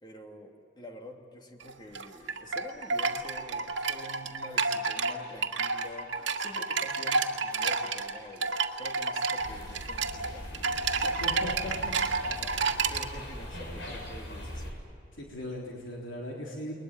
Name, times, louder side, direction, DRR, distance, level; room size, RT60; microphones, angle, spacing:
voice 1, 0.0-10.5 11.0-11.5 12.2-14.8, equal, 25° left, 2 dB, 2.9 m, -47 dB
sound 1, 1.6-13.0, right 4 dB, 70° right, 1.9 m, -30 dB
sound 2, 9.4-14.7, equal, 65° left, 6.9 m, -41 dB
voice 2, 11.2-12.0 13.9-14.0 15.1-16.7, left 1 dB, 85° left, -2 dB, 3.7 m, -38 dB
29.5 x 22.0 x 9.2 m, 2.7 s
head